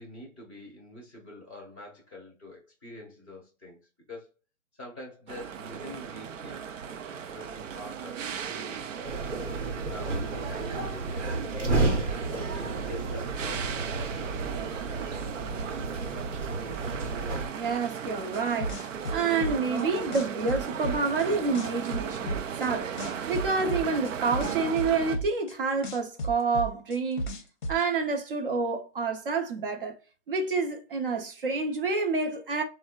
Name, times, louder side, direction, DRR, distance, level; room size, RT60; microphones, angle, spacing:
voice 1, 0.0-3.8 4.1-4.3 4.8-6.7 7.1-12.0 12.5-14.2, left 1 dB, 10° right, 0.5 m, -46 dB
sound 1, 5.3-25.2, right 7 dB, 85° right, 0.6 m, -37 dB
sound 2, 9.0-17.5, right 3 dB, 70° right, 1.0 m, -32 dB
voice 2, 17.5-18.8 19.1-22.9 23.3-27.3 27.7-29.9 30.3-32.6, right 4 dB, 45° right, 0.7 m, -28 dB
sound 3, 18.3-19.8 20.1-21.2 21.5-22.7 23.0-25.5 25.8-27.8, right 1 dB, 40° left, 0.6 m, -33 dB
3.8 x 2.1 x 2.3 m
hypercardioid pair, 170°, 37 cm